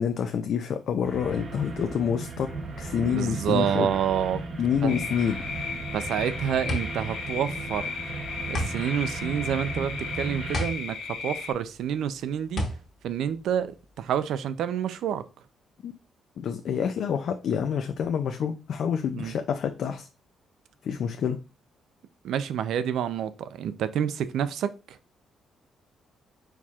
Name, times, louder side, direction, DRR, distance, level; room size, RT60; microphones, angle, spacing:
voice 1, 0.0-2.5 2.8-3.9 4.6-5.4 15.8-15.9 16.4-20.1 20.8-21.4, left 7 dB, 55° left, 0.4 m, -27 dB
sound 1, 1.0-10.6, right 3 dB, 40° right, 0.8 m, -36 dB
voice 2, 3.0-4.4 4.8-4.9 5.9-7.8 8.5-12.6 13.0-15.2 19.1-19.3 22.2-25.0, right 9 dB, 70° right, 0.4 m, -28 dB
sound 2, 4.9-11.5, left 5 dB, 80° left, 1.2 m, -36 dB
sound 3, 6.7-14.2, equal, 35° left, 1.2 m, -34 dB
4.6 x 4.2 x 2.4 m
cardioid pair, 160°, 0 cm